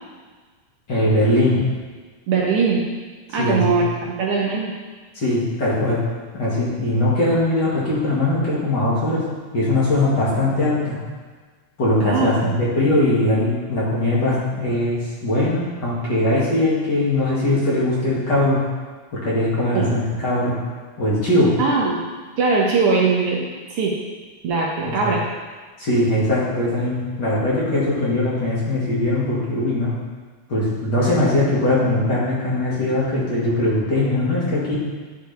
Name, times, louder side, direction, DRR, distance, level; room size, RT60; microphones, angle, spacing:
voice 1, 0.9-1.6 3.4-3.8 5.1-6.0 6.3-9.3 9.5-11.0 11.8-18.6 19.1-20.6 21.0-21.6 24.8-25.1 25.8-29.9 30.5-34.8, left 1 dB, 40° left, -8 dB, 2.2 m, -20 dB
voice 2, 2.3-2.8 3.3-4.7 12.0-12.5 19.7-19.9 21.6-22.0 22.4-24.0 24.4-25.2, right 4 dB, 65° right, -3 dB, 1.5 m, -21 dB
10.5 x 4.9 x 3.4 m, 1.4 s
omnidirectional pair, 3.4 m